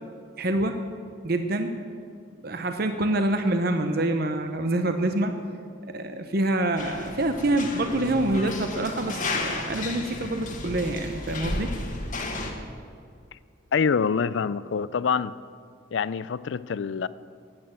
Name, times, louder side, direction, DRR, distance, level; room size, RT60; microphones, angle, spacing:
voice 1, 0.4-0.8 1.2-1.8 2.4-5.4 5.8-11.7, right 1 dB, 50° right, 7 dB, 0.8 m, -26 dB
sound 1, 6.8-12.5, left 2 dB, 40° left, 1.5 m, -33 dB
voice 2, 13.7-15.3 15.9-17.1, left 6 dB, 65° left, 18 dB, 0.4 m, -25 dB
12.0 x 8.8 x 9.0 m, 2.2 s
head